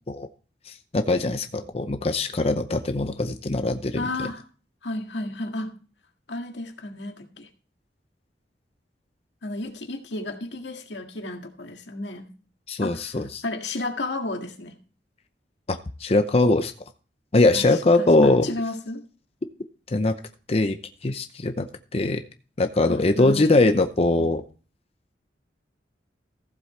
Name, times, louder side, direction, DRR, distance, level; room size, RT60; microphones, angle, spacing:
voice 1, 0.7-4.3 12.7-13.4 15.7-16.7 17.3-18.5 19.9-20.1 20.5-20.8 21.0-22.2 22.6-24.4, left 2 dB, 35° left, 7 dB, 0.6 m, -22 dB
voice 2, 4.0-4.4 4.8-5.7 6.3-7.5 9.4-12.3 12.8-14.7 17.5-19.0 22.9-23.6, left 2 dB, 90° left, 4 dB, 1.9 m, -33 dB
15.0 x 7.7 x 3.3 m, 0.38 s
head